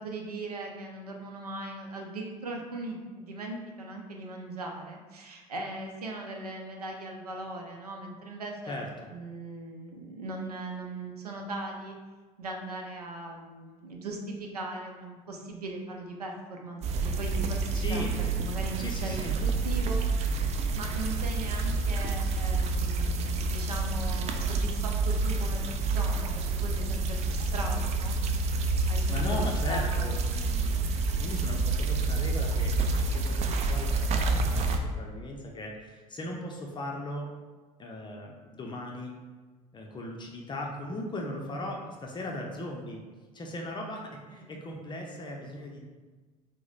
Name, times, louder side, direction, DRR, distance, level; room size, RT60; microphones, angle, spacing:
voice 1, 0.0-8.8 9.1-12.0 12.4-18.1 18.4-20.0 20.7-28.2 28.9-29.2 29.7-30.1 30.4-30.5 44.3-44.5, right 2 dB, 85° right, 2 dB, 0.6 m, -39 dB
sound 1, 16.8-34.8, right 3 dB, 35° right, 0.4 m, -28 dB
voice 2, 17.7-18.2 18.8-19.4 29.1-37.3 37.8-39.2 39.7-43.0 43.3-45.8, left 1 dB, 25° left, 0 dB, 0.6 m, -38 dB
4.8 x 2.1 x 4.0 m, 1.3 s
figure-of-eight pair, 65°, 19 cm